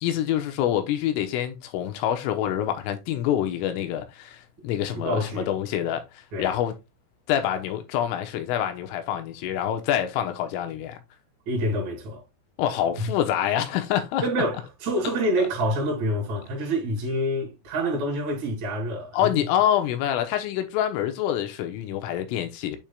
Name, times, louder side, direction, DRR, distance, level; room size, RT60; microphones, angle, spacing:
voice 1, 0.0-6.8 7.3-11.0 12.6-14.2 19.1-22.8, left 11 dB, 80° left, 3.5 m, -26 dB
voice 2, 4.9-5.5 6.3-6.5 11.5-12.2 14.2-19.4, right 1 dB, 40° right, 3.2 m, -27 dB
8.3 x 6.2 x 2.3 m
omnidirectional pair, 5.9 m